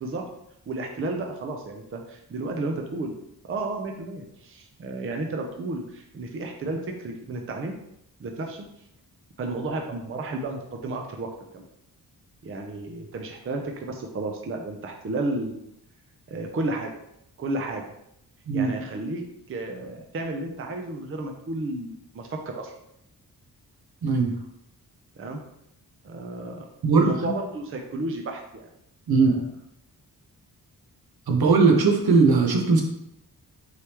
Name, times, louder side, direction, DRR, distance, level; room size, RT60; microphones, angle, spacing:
voice 1, 0.7-3.1 3.5-7.7 8.2-8.7 9.4-11.6 12.4-15.7 16.3-16.9 17.4-17.8 18.5-22.7 25.2-25.4 26.0-28.7 29.2-29.4, right 2 dB, 35° right, 3 dB, 0.5 m, -32 dB
voice 2, 24.0-24.3 26.8-27.3 29.1-29.4 31.3-32.8, right 4 dB, 70° right, 1 dB, 0.9 m, -19 dB
4.7 x 3.4 x 2.9 m, 0.78 s
wide cardioid pair, 135°, 38 cm